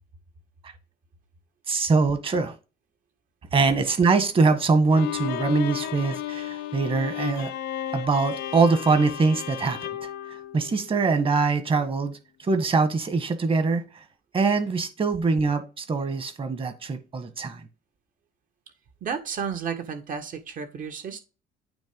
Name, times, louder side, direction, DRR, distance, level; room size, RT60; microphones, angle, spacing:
voice 1, 1.7-2.5 3.5-7.5 7.9-10.1 10.5-14.0 14.3-17.6, right 4 dB, 30° right, 1.7 m, -23 dB
Bowed string instrument, 4.9-11.2, left 12 dB, 80° left, 0.9 m, -34 dB
voice 2, 19.0-21.2, right 6 dB, 50° right, 1.7 m, -32 dB
9.1 x 3.4 x 5.3 m
cardioid pair, 110°, 17 cm